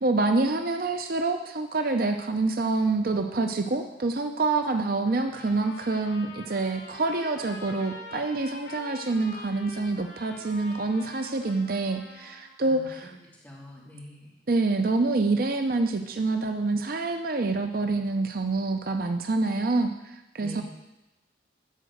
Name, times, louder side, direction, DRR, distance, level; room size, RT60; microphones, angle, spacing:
voice 1, 0.0-13.1 14.5-20.6, right 3 dB, 50° right, 6 dB, 0.6 m, -26 dB
Trumpet, 5.1-12.5, left 3 dB, 75° left, 3.0 m, -45 dB
voice 2, 12.6-13.1 13.4-14.3 20.4-20.6, left 1 dB, 10° left, -6 dB, 3.3 m, -45 dB
13.0 x 5.1 x 7.9 m, 0.99 s
head